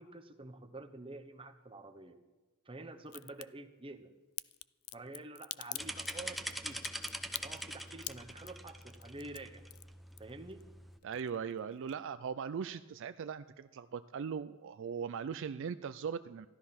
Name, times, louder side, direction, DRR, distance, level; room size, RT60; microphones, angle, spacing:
voice 1, 0.0-2.2 2.7-4.1 4.9-6.8 7.4-9.6 10.2-10.7, right 2 dB, 25° right, 7 dB, 0.9 m, -48 dB
Crack, 3.1-3.5 4.4-10.6 10.9-11.6 11.9-12.0, left 18 dB, 75° left, 0.4 m, -44 dB
sound 1, 5.8-11.0, equal, ahead, 0.7 m, -44 dB
voice 2, 11.0-16.5, right 6 dB, 60° right, 13 dB, 0.4 m, -39 dB
13.0 x 13.0 x 5.8 m, 1.2 s
head